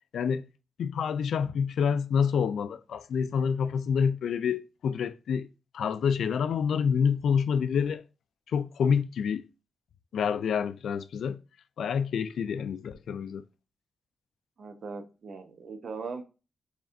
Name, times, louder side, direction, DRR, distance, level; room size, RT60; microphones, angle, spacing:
voice 1, 0.1-0.4 0.8-5.5 5.7-8.0 8.5-9.4 10.1-11.4 11.8-13.4, left 7 dB, 85° left, 0.3 m, -27 dB
voice 2, 14.6-16.2, right 4 dB, 55° right, 0.8 m, -39 dB
4.9 x 3.3 x 2.6 m
wide cardioid pair, 135°, 0 cm